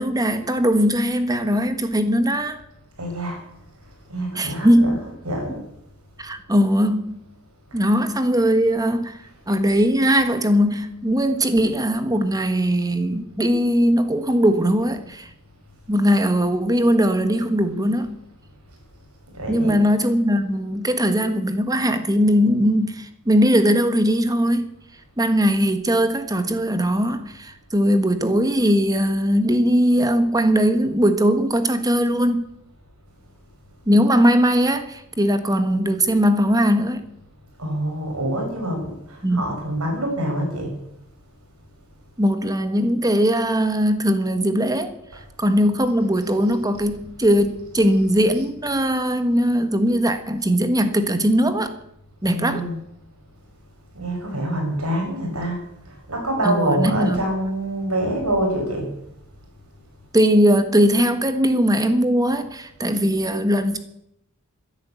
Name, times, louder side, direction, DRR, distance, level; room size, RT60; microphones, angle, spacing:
voice 1, 0.0-2.6 4.3-5.0 6.2-7.2 7.7-9.2 9.5-15.3 15.9-18.1 19.5-24.7 25.2-32.4 33.9-37.1 39.2-39.4 42.2-44.9 45.4-51.7 52.2-52.6 56.4-57.2 60.1-63.8, equal, 15° right, 1.4 m, -20 dB
voice 2, 3.0-3.4 4.1-5.6 7.7-7.9 19.3-19.8 37.6-40.8 45.1-45.2 52.2-52.8 53.9-58.9, right 1 dB, 80° right, 6.1 m, -26 dB
14.0 x 10.5 x 8.4 m
head